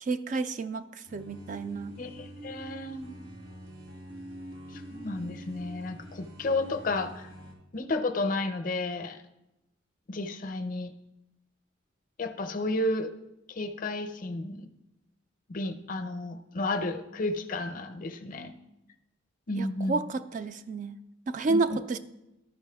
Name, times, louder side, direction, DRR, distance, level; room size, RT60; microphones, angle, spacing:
voice 1, 0.0-1.9 19.6-21.0 21.3-22.0, right 3 dB, 40° right, 11 dB, 0.3 m, -30 dB
sound 1, 1.0-7.5, right 1 dB, 75° right, 2.1 m, -45 dB
voice 2, 2.0-3.1 4.7-7.3 7.7-9.2 10.1-10.9 12.2-13.1 13.5-14.7 15.5-18.5 19.5-20.0 21.5-21.6, left 2 dB, 45° left, 8 dB, 0.6 m, -32 dB
13.0 x 5.4 x 3.4 m, 0.91 s
head